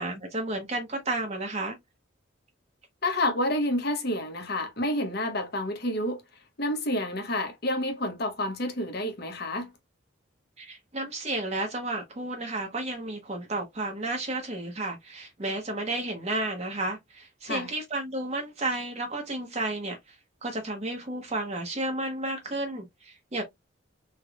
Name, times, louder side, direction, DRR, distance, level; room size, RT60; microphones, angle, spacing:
voice 1, 0.0-1.8 10.6-20.0 20.4-23.4, right 2 dB, 35° right, 0.8 m, -32 dB
voice 2, 3.0-6.2 6.6-9.7 17.5-17.7, left 1 dB, 55° left, 0.9 m, -29 dB
3.4 x 3.0 x 2.3 m
head